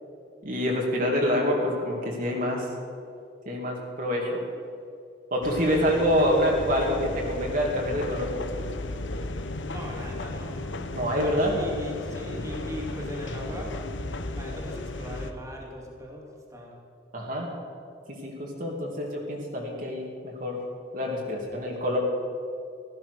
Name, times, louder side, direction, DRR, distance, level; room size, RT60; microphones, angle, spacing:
voice 1, 0.4-2.7 3.5-4.4 5.3-8.3 10.9-11.5 17.1-17.5 18.1-20.6 20.9-22.0, equal, 45° right, -1 dB, 2.4 m, -26 dB
sound 1, 5.4-15.3, left 2 dB, 90° left, 1.1 m, -34 dB
voice 2, 5.6-6.3 9.7-10.6 11.1-13.7 14.3-16.2 16.5-16.7, left 1 dB, 15° right, -2 dB, 2.7 m, -39 dB
16.0 x 13.5 x 6.6 m, 2.4 s
head